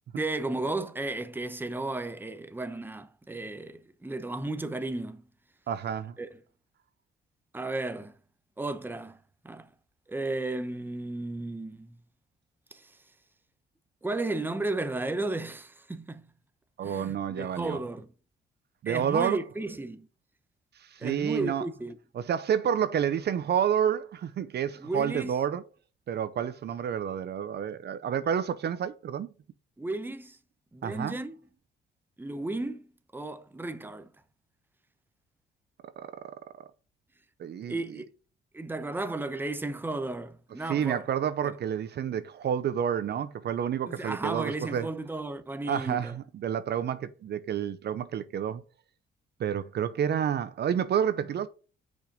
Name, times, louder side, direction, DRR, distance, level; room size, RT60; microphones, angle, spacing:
voice 1, 0.2-5.2 6.2-6.3 7.5-8.1 8.6-9.7 10.1-12.0 12.7-13.0 14.0-16.3 16.8-18.1 18.9-20.1 21.0-22.0 24.8-25.4 29.8-30.4 30.7-31.4 32.2-34.1 37.7-38.1 38.5-41.1 41.4-41.5 43.9-46.2, right 2 dB, 10° right, 0.9 m, -34 dB
voice 2, 5.7-6.2 16.8-17.8 18.8-19.4 20.9-21.6 22.2-25.6 26.1-29.3 30.8-31.2 37.4-37.8 40.7-44.9 45.7-48.6 49.4-51.5, right 8 dB, 55° right, 0.7 m, -29 dB
6.3 x 5.3 x 5.1 m
cardioid pair, 90°, 20 cm